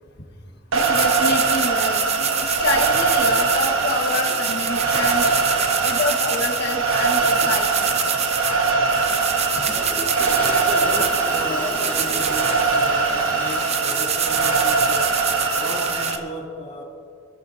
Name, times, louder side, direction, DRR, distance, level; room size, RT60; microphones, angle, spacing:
voice 1, 0.7-5.3 5.8-7.9, left 3 dB, 55° left, 3 dB, 1.5 m, -27 dB
sound 1, 0.7-16.2, right 8 dB, 30° right, 0.6 m, -27 dB
sound 2, 0.7-16.2, right 4 dB, 80° right, 1.4 m, -22 dB
Toilet flush, 8.9-14.0, left 1 dB, 10° left, 0.6 m, -37 dB
voice 2, 10.5-15.2 15.5-16.8, equal, 30° left, -3 dB, 2.9 m, -34 dB
26.0 x 12.5 x 2.8 m, 2.4 s
head